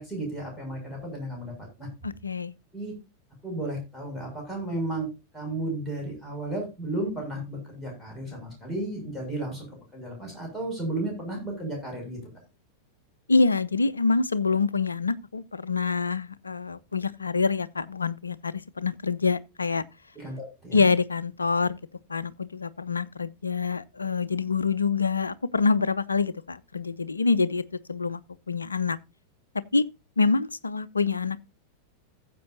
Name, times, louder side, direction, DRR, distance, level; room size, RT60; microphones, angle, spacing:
voice 1, 0.0-1.9 2.7-2.9 3.4-5.1 5.3-9.7 9.9-12.2 20.1-20.8, right 1 dB, 5° left, 6.5 m, -33 dB
voice 2, 2.0-2.5 13.3-19.8 20.7-21.8 22.1-28.2 28.5-29.0 29.7-29.9 30.2-31.4, left 4 dB, 75° left, 0.5 m, -26 dB
15.5 x 7.5 x 2.7 m
figure-of-eight pair, 90°, 0 cm